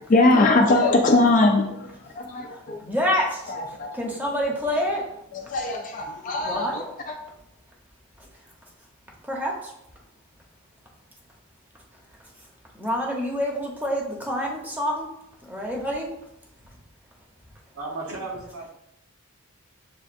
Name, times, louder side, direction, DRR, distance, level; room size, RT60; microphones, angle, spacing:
voice 1, 0.1-2.8 3.5-4.1 5.3-7.2, left 2 dB, 40° left, 2 dB, 0.4 m, -21 dB
voice 2, 2.5-3.4 3.9-5.0 6.4-6.8 9.3-9.7 12.7-15.1 15.4-16.1, equal, 10° right, -2 dB, 0.8 m, -27 dB
voice 3, 17.7-18.7, right 3 dB, 80° right, -1 dB, 1.1 m, -34 dB
7.1 x 2.4 x 2.5 m, 0.82 s
head